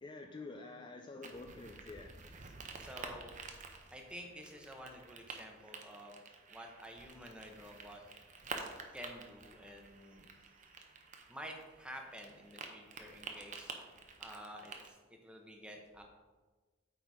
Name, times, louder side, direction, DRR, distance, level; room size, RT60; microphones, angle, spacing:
voice 1, 0.0-2.2, left 3 dB, 25° left, 3 dB, 0.3 m, -48 dB
sound 1, 1.2-14.9, right 4 dB, 40° right, 0.7 m, -50 dB
voice 2, 2.4-3.3 3.9-6.2 6.5-8.1 8.9-10.3 11.3-13.7 14.2-16.0, equal, 5° right, 2 dB, 0.8 m, -50 dB
8.3 x 4.0 x 4.7 m, 1.3 s
head